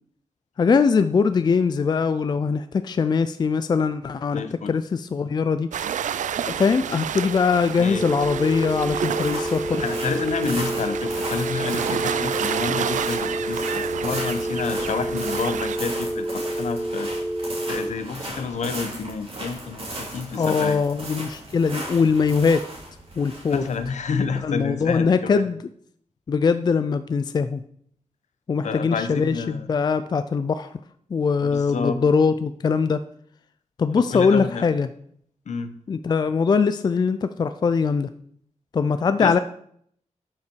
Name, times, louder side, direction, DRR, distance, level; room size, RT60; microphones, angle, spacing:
voice 1, 0.6-4.4 4.7-5.7 6.4-9.8 20.4-22.6 23.2-23.6 24.4-25.6 26.3-27.6 28.5-30.7 31.1-33.0 33.8-34.9 35.9-38.1 38.7-39.4, left 5 dB, 35° left, 11 dB, 0.3 m, -21 dB
voice 2, 4.3-4.7 7.8-8.1 9.8-17.1 17.6-20.8 23.5-25.4 28.6-29.7 31.4-32.0 34.0-34.6 35.5-35.7 39.2-39.4, left 5 dB, 70° left, 9 dB, 0.9 m, -29 dB
sound 1, 5.7-15.8, right 9 dB, 85° right, 0.4 m, -30 dB
sound 2, 7.9-17.9, right 1 dB, 5° left, 0.7 m, -29 dB
sound 3, 8.1-25.0, right 1 dB, 50° right, 3.0 m, -36 dB
11.5 x 5.7 x 4.6 m, 0.66 s
wide cardioid pair, 160°, 13 cm